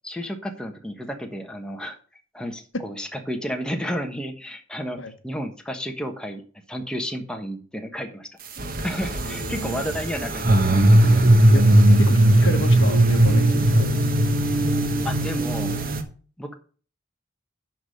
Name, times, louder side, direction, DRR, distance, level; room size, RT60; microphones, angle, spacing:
voice 1, 0.0-2.0 2.3-5.0 5.2-6.4 6.7-8.3 8.8-10.6 11.0-11.3 15.0-15.8 16.4-16.5, equal, 5° left, 3 dB, 1.2 m, -32 dB
sound 1, 8.6-16.0, right 1 dB, 45° right, 1.3 m, -18 dB
voice 2, 9.2-9.8 11.5-11.6 12.0-14.1, left 2 dB, 65° left, 9 dB, 1.1 m, -31 dB
11.5 x 4.1 x 6.6 m, 0.41 s
head